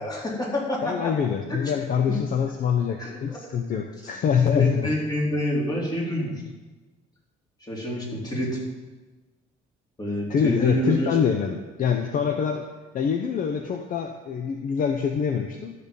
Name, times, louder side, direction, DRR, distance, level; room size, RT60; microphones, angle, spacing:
voice 1, 0.0-1.1 1.5-1.7 3.0-3.4 4.4-6.3 7.7-8.6 10.0-11.1, equal, 25° left, -4 dB, 3.7 m, -27 dB
voice 2, 0.8-4.9 10.3-12.6 12.9-15.7, left 7 dB, 55° left, 5 dB, 0.8 m, -25 dB
12.5 x 6.7 x 5.4 m, 1.2 s
cardioid pair, 110°, 17 cm